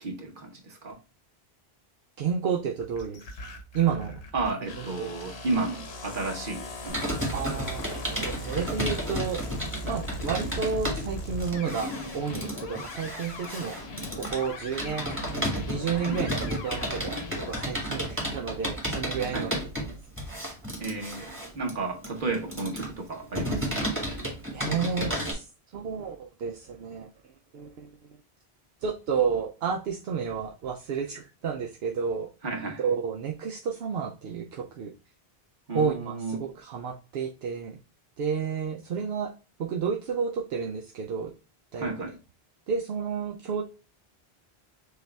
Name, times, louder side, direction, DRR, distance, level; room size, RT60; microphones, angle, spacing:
voice 1, 0.0-1.0 4.3-7.3 16.1-16.3 19.3-19.6 20.8-23.7 32.4-32.8 35.7-36.4 41.8-42.2, right 3 dB, 55° right, 1.3 m, -33 dB
voice 2, 2.2-3.2 3.7-4.2 4.8-5.1 7.3-9.4 9.8-13.8 14.2-15.2 15.7-19.5 19.8-19.9 23.9-24.0 24.5-25.5 25.7-27.1 27.5-27.9 28.8-32.3 32.8-34.9 35.7-37.8 38.2-39.3 39.6-41.3 41.7-41.9 42.7-43.6, right 6 dB, 75° right, 0.8 m, -31 dB
sound 1, 2.8-17.7, left 2 dB, 80° left, 1.2 m, -39 dB
Computer keyboard, 6.9-25.3, equal, 10° right, 1.6 m, -33 dB
6.6 x 2.4 x 3.2 m
omnidirectional pair, 1.1 m